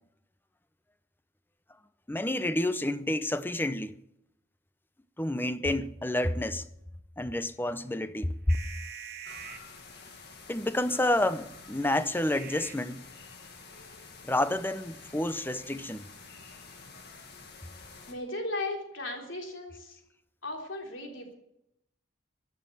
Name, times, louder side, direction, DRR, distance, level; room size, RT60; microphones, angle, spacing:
voice 1, 2.1-3.9 5.2-6.7 7.2-8.6 10.5-13.0 14.2-16.0, left 1 dB, 10° left, 0.6 m, -29 dB
sound 1, 7.5-13.2, right 7 dB, 55° right, 1.5 m, -47 dB
sound 2, 9.2-18.1, left 4 dB, 60° left, 2.1 m, -49 dB
voice 2, 18.1-20.0 20.4-21.3, left 2 dB, 75° left, 3.5 m, -36 dB
14.0 x 9.3 x 7.8 m
head